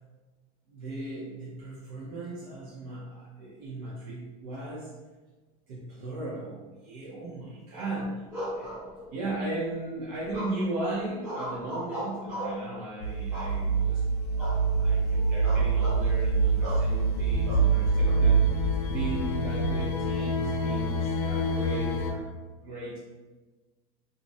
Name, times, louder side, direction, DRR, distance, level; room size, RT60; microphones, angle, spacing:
voice 1, 0.7-4.9 5.7-8.2 8.5-8.8 9.1-14.0 14.5-18.4 18.9-22.2 22.6-23.0, right 2 dB, 70° right, -7 dB, 0.6 m, -37 dB
sound 1, 8.3-9.3 10.3-10.8 11.2-12.7 13.3-13.9 14.4-14.6 14.9-15.1 15.4-16.0 16.6-16.9 17.5-18.2, equal, 15° right, 0.5 m, -37 dB
sound 2, 13.0-22.1, right 3 dB, 90° left, 0.5 m, -25 dB
2.5 x 2.0 x 2.6 m, 1.3 s
cardioid pair, 175°, 19 cm